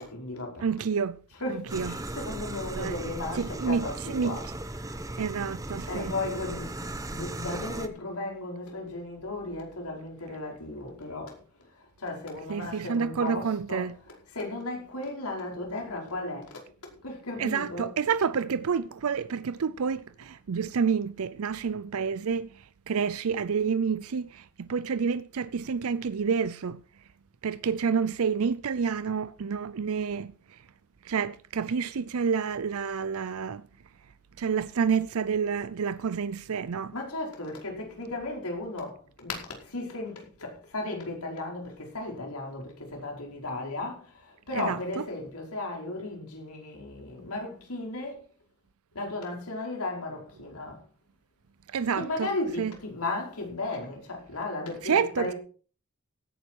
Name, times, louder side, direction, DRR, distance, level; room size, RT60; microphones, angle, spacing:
voice 1, 0.0-0.7 1.3-4.6 5.0-5.1 5.9-16.6 17.0-17.9 36.9-48.2 48.9-50.8 51.9-55.3, left 2 dB, 85° left, 5.0 m, -35 dB
voice 2, 0.6-1.2 1.5-1.9 2.8-3.0 3.3-4.4 4.8-6.1 12.5-13.9 17.4-26.8 27.4-30.6 31.0-33.7 34.4-36.9 44.5-45.0 51.7-52.3 52.6-52.7 54.8-55.3, right 6 dB, 70° right, 0.5 m, -29 dB
sound 1, 1.7-7.9, right 1 dB, 15° right, 1.0 m, -37 dB
16.5 x 9.7 x 4.6 m
head